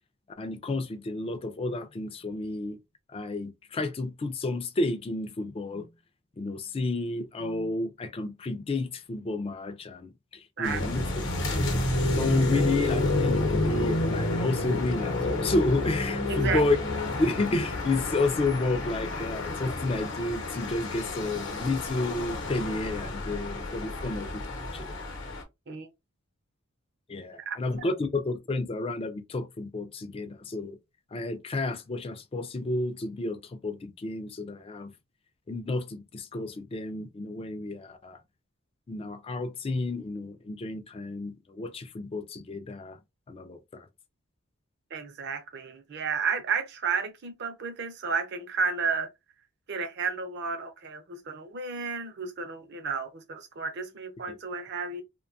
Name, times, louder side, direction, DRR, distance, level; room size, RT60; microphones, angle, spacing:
voice 1, 0.4-2.8 3.1-5.9 6.4-11.1 11.5-16.8 17.2-25.0 27.1-30.8 31.1-34.9 35.5-38.2 38.9-43.0 43.3-43.9 54.3-54.4, left 2 dB, 25° left, 0.3 m, -31 dB
sound 1, 10.6-25.4, left 2 dB, 55° left, 0.8 m, -30 dB
voice 2, 10.6-11.2 16.3-16.6 25.7-25.9 27.5-27.6 44.9-49.1 49.7-55.0, right 5 dB, 50° right, 0.5 m, -32 dB
2.6 x 2.2 x 2.5 m
head